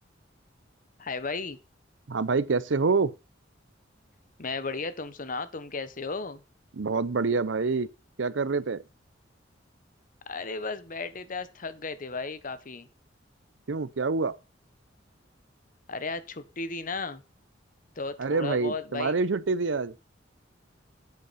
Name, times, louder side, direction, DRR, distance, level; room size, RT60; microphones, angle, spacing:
voice 1, 1.0-1.6 4.4-6.4 10.3-12.9 15.9-17.2 18.0-19.1, left 4 dB, 45° left, 1.0 m, -34 dB
voice 2, 2.1-3.1 6.7-7.9 8.2-8.8 13.7-14.4 18.2-19.9, right 4 dB, 75° right, 0.7 m, -26 dB
9.9 x 8.4 x 4.2 m
head